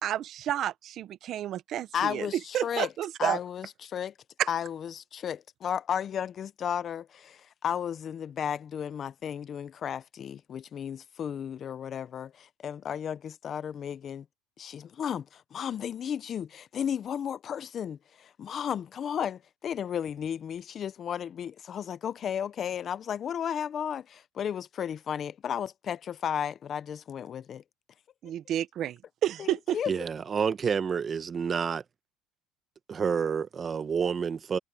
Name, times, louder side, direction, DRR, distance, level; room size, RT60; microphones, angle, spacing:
voice 1, 0.0-2.3 2.5-3.4 4.4-4.5 28.2-29.8, right 11 dB, 45° right, 1.0 m, -30 dB
voice 2, 1.9-2.9 3.2-4.1 4.5-14.2 14.6-27.6 29.4-29.9, left 8 dB, 35° left, 0.6 m, -34 dB
voice 3, 29.9-31.8 32.9-34.6, right 6 dB, 30° right, 1.0 m, -29 dB
cardioid pair, 130°, 0 cm